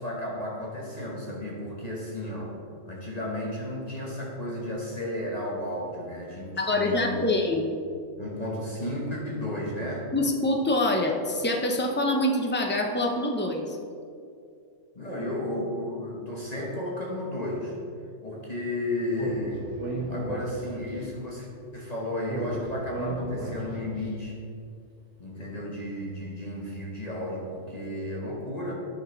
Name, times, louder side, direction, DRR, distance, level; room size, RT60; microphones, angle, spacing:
voice 1, 0.0-2.6 2.8-7.4 8.2-10.1 14.9-17.7 18.2-19.7 20.1-24.4 25.2-28.7, left 1 dB, 30° left, -4 dB, 1.2 m, -33 dB
voice 2, 6.6-7.7 10.1-13.8, left 1 dB, 15° left, 2 dB, 0.4 m, -25 dB
Speech, 19.1-21.0 22.2-24.0, right 2 dB, 65° right, 1.8 m, -34 dB
10.5 x 6.2 x 3.9 m, 2.4 s
omnidirectional pair, 1.3 m